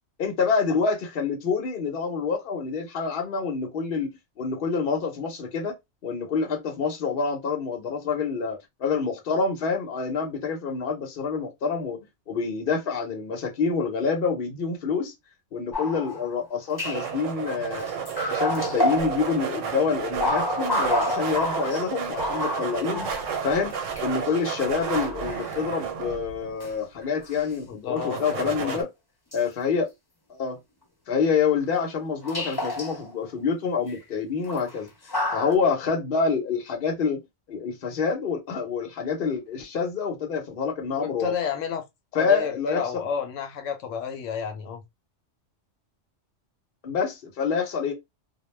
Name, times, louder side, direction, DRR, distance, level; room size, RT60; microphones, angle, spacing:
voice 1, 0.2-5.8 6.0-12.0 12.3-15.1 15.5-17.9 18.2-23.0 23.4-28.9 29.3-29.9 30.3-30.6 31.1-34.9 35.3-37.2 37.5-41.3 42.1-42.8 46.8-47.9, left 5 dB, 50° left, 0.9 m, -27 dB
sound 1, 15.7-16.3 16.8-17.1 17.8-19.5 20.0-24.1 24.8-25.5 26.6-26.7 27.0-27.4 27.9-28.0 29.3-29.4 31.7-31.8 32.2-33.2 33.9-34.0 34.4-34.7 35.1-35.5, left 1 dB, 20° left, 0.8 m, -29 dB
sound 2, 16.8-26.7 28.0-28.8, right 7 dB, 85° right, 1.0 m, -32 dB
voice 2, 27.7-28.8 41.0-41.8 42.1-44.8, left 7 dB, 85° left, 1.0 m, -31 dB
2.3 x 2.1 x 3.1 m
omnidirectional pair, 1.3 m